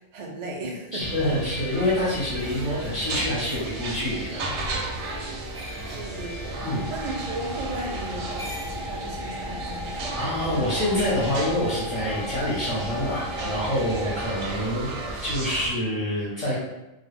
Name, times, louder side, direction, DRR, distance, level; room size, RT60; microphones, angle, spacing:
voice 1, 0.0-1.1 1.6-1.7 5.9-10.0, right 2 dB, 85° right, -1 dB, 0.3 m, -36 dB
voice 2, 0.9-4.5 6.6-6.9 10.2-14.9 15.2-16.6, left 1 dB, 35° left, -9 dB, 0.6 m, -26 dB
sound 1, 1.0-15.7, right 2 dB, 70° right, 0.8 m, -34 dB
sound 2, 2.4-3.7 5.5-6.0 8.1-8.9 9.6-9.8 10.9-11.1, equal, 35° right, 0.6 m, -43 dB
sound 3, 6.5-14.3, left 1 dB, ahead, 0.8 m, -37 dB
2.3 x 2.1 x 3.1 m, 0.98 s
omnidirectional pair, 1.3 m